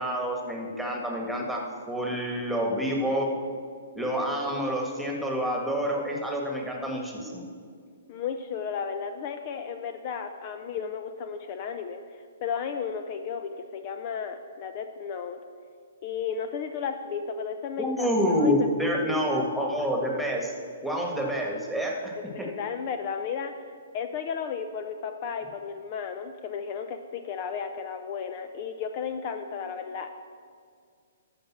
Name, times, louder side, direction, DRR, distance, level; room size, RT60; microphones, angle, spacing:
voice 1, 0.0-3.3 3.9-7.4 17.8-20.5 20.8-22.5, equal, ahead, 0 dB, 1.7 m, -28 dB
voice 2, 8.1-15.4 16.0-19.5 22.2-23.7 23.9-30.1, left 6 dB, 40° left, 8 dB, 0.6 m, -34 dB
12.5 x 5.1 x 7.3 m, 2.1 s
hypercardioid pair, 140°, 0 cm